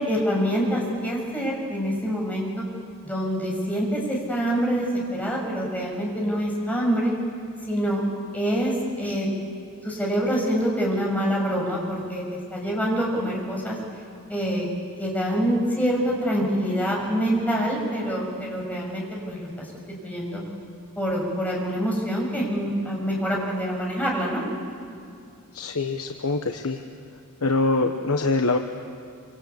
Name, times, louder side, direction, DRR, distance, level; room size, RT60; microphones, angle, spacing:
voice 1, 0.0-2.7 3.0-4.9 5.1-7.1 7.6-8.0 8.3-9.3 9.8-12.2 12.5-13.8 14.3-14.7 15.0-19.7 20.0-20.4 21.0-24.4, equal, 5° left, -2 dB, 6.5 m, -25 dB
voice 2, 25.5-26.8 27.4-28.6, left 3 dB, 80° left, 4 dB, 1.2 m, -24 dB
26.5 x 26.0 x 8.4 m, 2.4 s
head